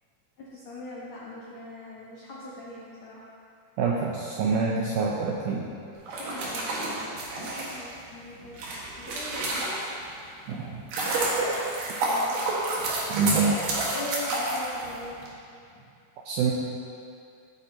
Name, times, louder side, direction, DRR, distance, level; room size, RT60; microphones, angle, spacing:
voice 1, 0.4-3.3 6.2-7.1 7.4-8.6 8.9-9.7 12.0-12.4 13.9-15.2 15.7-15.8, left 1 dB, 85° left, -7 dB, 1.5 m, -41 dB
voice 2, 3.8-5.7 10.5-10.8 13.1-13.6 16.3-16.5, right 4 dB, 85° right, -2 dB, 2.2 m, -26 dB
sound 1, 6.0-10.1 10.6-15.3, right 2 dB, 60° right, 2.6 m, -29 dB
16.0 x 8.0 x 2.8 m, 2.5 s
omnidirectional pair, 5.1 m